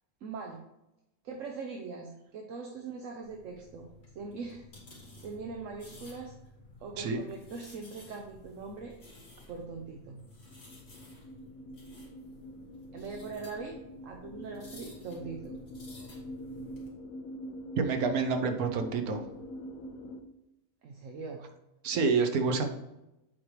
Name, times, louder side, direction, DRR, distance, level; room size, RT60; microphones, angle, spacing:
voice 1, 0.2-0.6 1.2-3.9 4.1-4.7 5.2-6.3 6.8-8.9 9.5-10.2 12.9-13.8 14.0-15.6 20.8-21.5, right 4 dB, 65° right, 2 dB, 1.1 m, -41 dB
sound 1, 3.2-16.9, left 2 dB, 45° left, 2.0 m, -53 dB
sound 2, 10.5-20.2, equal, 75° left, 1.0 m, -45 dB
voice 2, 17.8-19.2 21.8-22.6, right 4 dB, 85° right, 6 dB, 1.3 m, -28 dB
7.4 x 4.7 x 3.2 m, 0.92 s
omnidirectional pair, 1.5 m